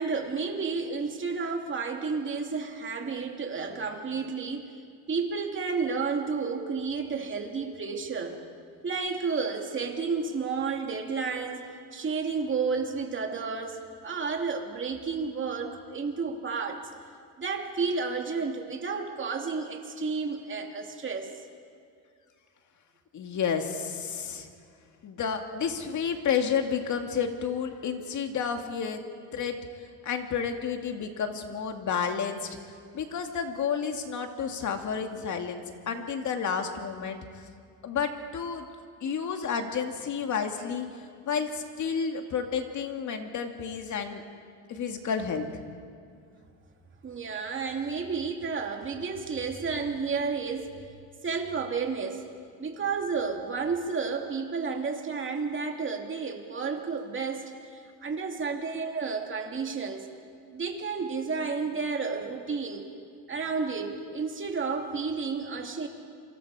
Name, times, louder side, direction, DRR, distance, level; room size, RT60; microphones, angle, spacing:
voice 1, 0.0-4.7 5.1-8.4 8.8-11.7 11.9-16.8 17.4-21.3 47.0-50.7 51.2-52.2 52.6-60.1 60.5-62.8 63.3-65.9, right 5 dB, 30° right, 3 dB, 2.6 m, -31 dB
voice 2, 23.1-24.5 25.0-29.0 29.3-29.6 30.0-32.5 32.9-37.2 37.8-38.6 39.0-40.9 41.2-44.2 44.7-45.4, left 6 dB, 45° left, 5 dB, 2.2 m, -31 dB
27.5 x 25.0 x 4.9 m, 2.3 s
cardioid pair, 130°, 40 cm